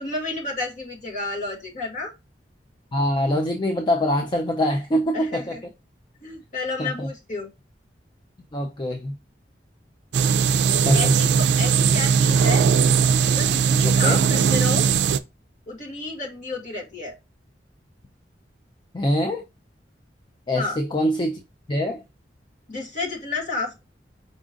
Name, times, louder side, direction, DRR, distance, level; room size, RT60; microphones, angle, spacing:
voice 1, 0.0-2.1 5.1-5.6 6.2-7.5 10.9-12.7 13.3-14.9 15.7-17.1 20.6-20.8 22.7-23.8, left 3 dB, 45° left, 1.8 m, -31 dB
voice 2, 2.9-5.6 6.8-7.1 8.5-9.1 10.8-11.1 13.8-14.2 18.9-19.4 20.5-21.4 21.7-22.0, equal, 25° left, 0.4 m, -24 dB
sound 1, 10.1-15.2, right 7 dB, 75° right, 0.3 m, -19 dB
5.2 x 2.5 x 3.7 m
head